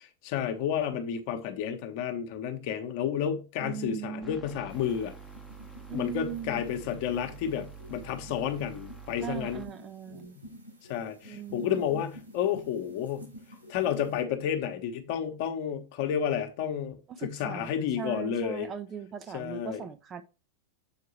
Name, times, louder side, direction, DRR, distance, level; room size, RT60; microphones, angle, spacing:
voice 1, 0.0-5.1 5.9-9.6 10.1-10.4 10.9-13.3 13.7-18.7 19.3-19.8, left 9 dB, 45° left, 1.0 m, -31 dB
voice 2, 3.6-4.4 5.9-6.6 9.2-10.3 11.3-12.0 17.2-20.2, right 7 dB, 25° right, 0.5 m, -39 dB
sound 1, 4.2-9.7, right 5 dB, ahead, 0.7 m, -47 dB
sound 2, 4.7-14.2, equal, 80° right, 4.1 m, -51 dB
7.3 x 4.6 x 3.0 m
figure-of-eight pair, 90°, 0 cm